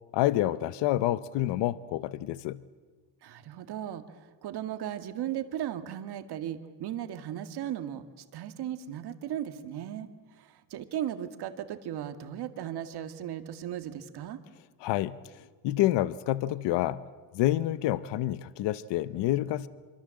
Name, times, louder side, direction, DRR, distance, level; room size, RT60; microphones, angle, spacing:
voice 1, 0.1-2.6 14.8-15.2 15.6-17.0 17.3-19.7, left 14 dB, 80° left, 16 dB, 0.9 m, -28 dB
voice 2, 3.2-14.4, right 10 dB, 65° right, 9 dB, 2.0 m, -37 dB
26.0 x 24.0 x 7.7 m, 1.3 s
cardioid pair, 115°, 42 cm